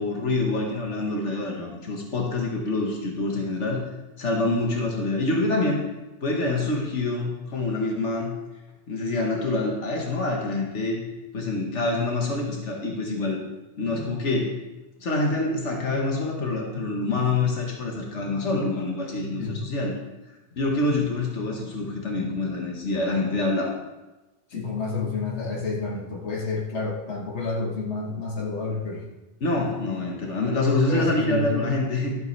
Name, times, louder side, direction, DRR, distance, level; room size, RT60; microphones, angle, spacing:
voice 1, 0.0-3.8 4.2-5.8 6.2-8.3 8.9-11.0 11.3-13.4 13.8-14.5 15.0-19.9 20.6-23.7 29.4-32.2, left 2 dB, 90° left, 0 dB, 1.7 m, -26 dB
voice 2, 19.4-19.7 24.5-29.0 30.9-31.7, left 4 dB, 70° left, -1 dB, 1.7 m, -29 dB
12.5 x 7.8 x 3.3 m, 1.1 s
omnidirectional pair, 1.2 m